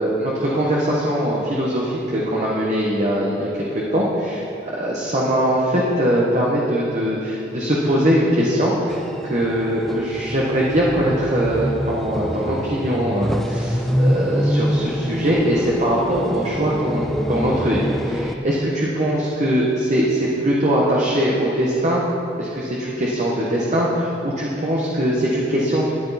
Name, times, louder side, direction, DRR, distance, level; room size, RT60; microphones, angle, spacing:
voice 1, 0.0-3.5 3.7-4.4 4.7-22.0 22.4-25.9, equal, 40° right, -5 dB, 1.3 m, -21 dB
sound 1, 8.9-18.3, equal, ahead, 0.4 m, -25 dB
13.5 x 10.5 x 4.2 m, 2.9 s
head